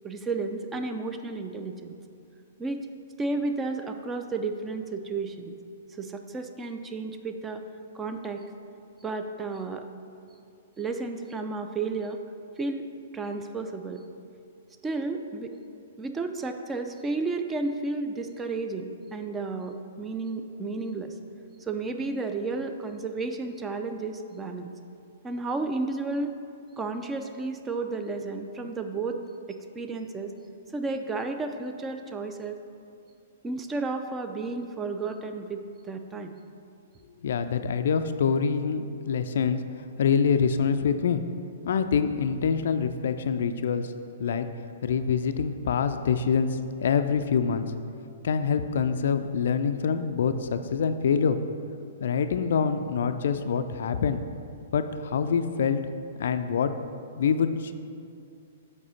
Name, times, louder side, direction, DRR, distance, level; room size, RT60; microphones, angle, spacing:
voice 1, 0.0-1.9 2.6-2.9 3.2-5.5 6.0-7.6 7.9-8.4 9.0-9.9 10.8-12.2 12.6-12.8 13.1-14.0 14.8-15.5 16.0-21.2 21.6-24.7 25.2-26.3 26.8-29.2 29.5-30.3 30.7-32.6 33.4-36.3, right 3 dB, 15° right, 6 dB, 0.4 m, -32 dB
voice 2, 37.2-39.6 40.0-41.2 41.7-43.9 44.2-44.5 44.8-47.7 48.2-51.4 52.0-54.2 54.7-55.8 56.2-56.7 57.2-57.7, left 6 dB, 60° left, 9 dB, 0.3 m, -25 dB
7.3 x 4.8 x 4.1 m, 2.5 s
figure-of-eight pair, 115°, 0 cm